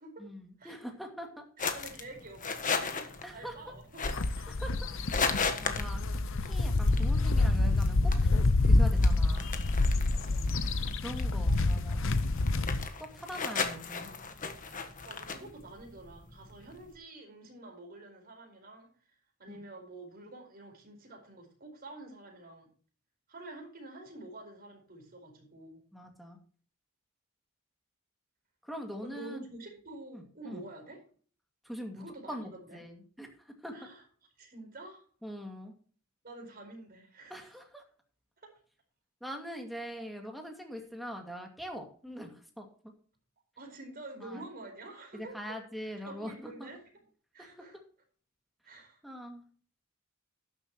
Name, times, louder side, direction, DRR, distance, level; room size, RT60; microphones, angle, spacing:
voice 1, 0.2-1.4 3.2-3.5 4.5-4.7 5.3-6.0 6.4-9.5 11.0-12.1 13.0-14.1 19.5-19.6 25.9-26.4 28.6-29.4 30.1-30.6 31.6-33.3 33.6-33.7 35.2-35.7 37.3-37.8 39.2-42.7 44.2-44.4 45.1-46.7 49.0-49.4, equal, ahead, 2 dB, 2.2 m, -42 dB
sound 1, 1.6-16.9, left 5 dB, 40° left, 1.4 m, -37 dB
voice 2, 1.6-4.0 4.3-4.5 10.2-10.8 13.3-14.6 15.0-22.7 23.3-25.8 29.0-31.0 32.0-32.8 33.7-34.0 34.4-35.0 36.2-37.4 38.4-38.5 43.6-45.4 46.1-46.8 47.3-47.8 48.6-49.0, right 2 dB, 45° right, 2 dB, 4.7 m, -48 dB
sound 2, 4.0-12.9, left 2 dB, 65° left, 0.8 m, -27 dB
12.5 x 10.5 x 3.0 m, 0.44 s
head